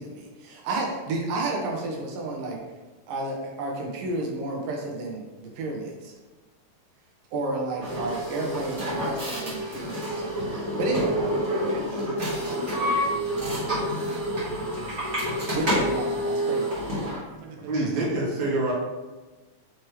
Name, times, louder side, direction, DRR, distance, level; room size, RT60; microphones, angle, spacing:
voice 1, 0.0-2.6 3.1-6.1 7.3-11.1 13.6-14.0 15.5-16.9, right 2 dB, 90° right, -1 dB, 2.7 m, -31 dB
sound 1, 7.8-17.2, equal, 35° right, 1.5 m, -28 dB
voice 2, 11.1-15.0 17.3-18.2 18.5-18.6, right 4 dB, 70° right, 1 dB, 1.8 m, -43 dB
voice 3, 17.6-18.7, right 2 dB, 50° right, -4 dB, 1.4 m, -26 dB
6.4 x 4.4 x 3.3 m, 1.2 s
omnidirectional pair, 3.7 m